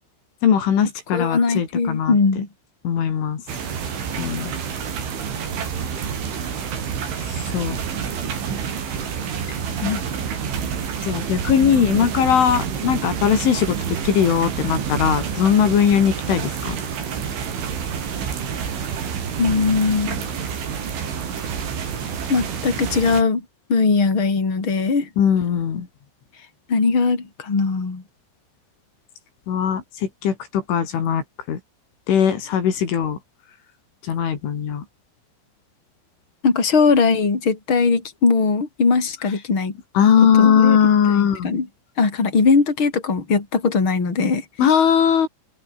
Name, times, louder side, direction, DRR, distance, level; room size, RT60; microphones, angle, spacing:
voice 1, 0.4-2.2 2.8-3.4 4.2-4.5 7.5-7.8 9.8-10.0 11.0-13.8 14.0-16.8 25.2-25.9 29.5-31.6 32.1-33.2 34.0-34.8 40.0-41.5 44.6-45.3, left 8 dB, 85° left, 6.3 m, -19 dB
voice 2, 1.1-2.5 19.4-20.3 22.3-23.4 23.7-25.1 26.7-28.0 36.4-39.7 40.3-40.8 41.2-41.7 42.0-44.4, left 4 dB, 25° left, 5.1 m, -20 dB
sound 1, 3.5-23.2, right 7 dB, 80° right, 7.1 m, -28 dB
omnidirectional pair, 5.4 m